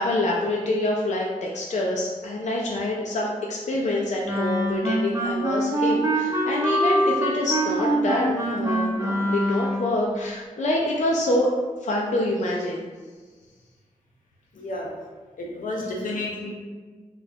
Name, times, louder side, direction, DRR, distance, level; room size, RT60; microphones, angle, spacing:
voice 1, 0.0-11.5 11.8-12.8, left 1 dB, 60° left, -2 dB, 0.4 m, -26 dB
Wind instrument woodwind instrument, 4.2-10.0, right 1 dB, 25° right, 0.7 m, -24 dB
voice 2, 14.5-14.9 15.4-16.5, left 2 dB, 90° left, -3 dB, 0.8 m, -31 dB
4.2 x 2.3 x 2.7 m, 1.5 s
wide cardioid pair, 100°, 13 cm